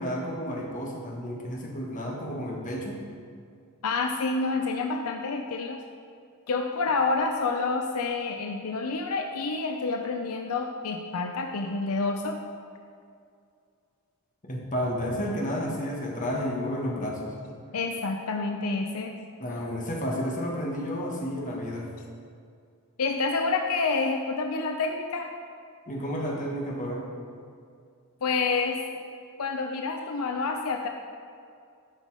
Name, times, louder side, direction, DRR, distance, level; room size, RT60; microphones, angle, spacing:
voice 1, 0.0-3.0 14.5-17.4 19.4-21.9 25.9-27.1, equal, 35° left, -1 dB, 1.5 m, -31 dB
voice 2, 3.8-5.8 6.5-12.4 17.7-19.2 23.0-25.3 28.2-29.0 29.4-30.9, left 3 dB, 75° left, 4 dB, 0.6 m, -28 dB
11.5 x 5.4 x 4.9 m, 2.3 s
head